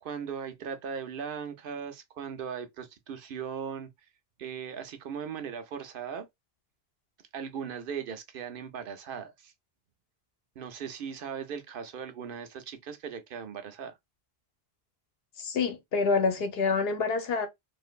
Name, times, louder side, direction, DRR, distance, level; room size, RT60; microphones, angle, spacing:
voice 1, 0.0-3.9 4.4-6.3 7.3-9.5 10.6-14.0, right 7 dB, 65° right, 0.7 m, -38 dB
voice 2, 15.4-17.5, left 4 dB, 75° left, 0.9 m, -27 dB
2.9 x 2.5 x 2.3 m
omnidirectional pair, 1.0 m